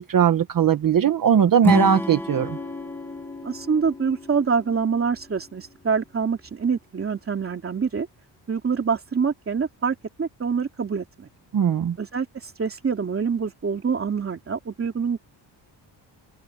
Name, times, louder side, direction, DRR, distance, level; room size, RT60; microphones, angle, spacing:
voice 1, 0.0-2.6 11.5-12.0, right 8 dB, 45° right, 1.3 m, -19 dB
Acoustic guitar / Strum, 1.6-4.9, left 1 dB, 5° left, 1.2 m, -28 dB
Bass guitar, 2.3-5.9, left 4 dB, 25° left, 3.6 m, -41 dB
voice 2, 3.4-8.1 8.5-11.3 12.0-15.2, right 5 dB, 30° right, 2.9 m, -26 dB
cardioid pair, 140°, 45 cm